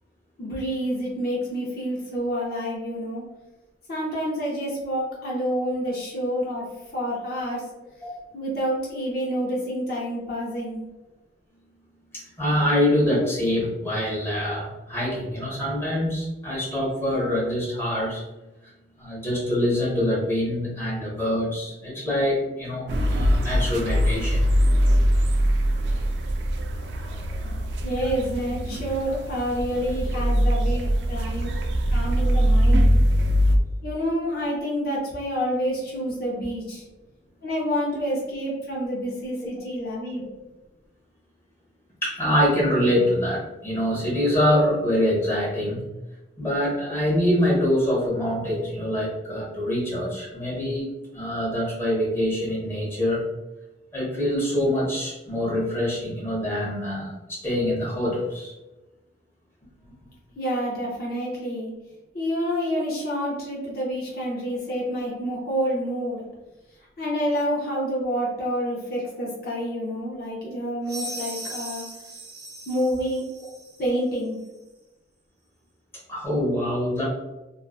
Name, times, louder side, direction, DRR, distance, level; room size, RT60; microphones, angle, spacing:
voice 1, 0.4-3.2 3.9-7.7 8.3-10.8 27.8-31.5 31.9-32.9 33.8-36.8 37.4-40.2 60.4-61.7 62.1-66.2 67.0-71.8 72.7-73.2 73.8-74.4, equal, 55° left, -4 dB, 0.6 m, -28 dB
voice 2, 12.1-18.2 19.0-24.4 42.0-45.8 46.4-50.9 51.1-53.2 53.9-58.5 65.1-65.2 76.1-77.0, left 1 dB, 15° left, -7 dB, 0.8 m, -25 dB
sound 1, 22.9-33.6, equal, 75° right, 0.3 m, -22 dB
sound 2, 70.9-73.8, right 1 dB, 20° right, 0.6 m, -38 dB
2.5 x 2.2 x 2.3 m, 1.1 s
head